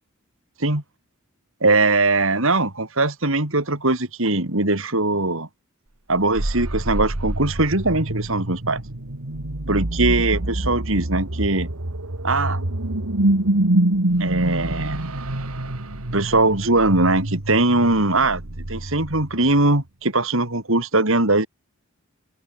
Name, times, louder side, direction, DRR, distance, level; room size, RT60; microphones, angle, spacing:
voice 1, 1.6-5.5 6.1-8.8 9.7-11.7 12.2-12.6 14.2-15.0 16.1-18.4 18.7-21.5, right 2 dB, 65° right, 3.9 m, -20 dB
sound 1, 6.1-19.6, right 1 dB, 85° right, 2.2 m, -26 dB
open air
head